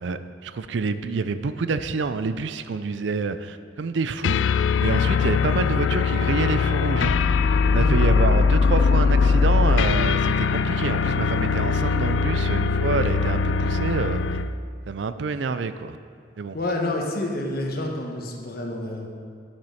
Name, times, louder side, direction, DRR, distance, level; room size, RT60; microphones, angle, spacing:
voice 1, 0.0-4.4 4.8-7.2 7.7-14.2 14.9-16.0 16.4-16.6, right 4 dB, 70° right, 11 dB, 0.4 m, -27 dB
sound 1, 4.2-14.6, left 5 dB, 75° left, 0.3 m, -21 dB
voice 2, 16.5-19.1, left 1 dB, 50° left, 1 dB, 1.3 m, -28 dB
9.6 x 7.4 x 5.6 m, 2.2 s
head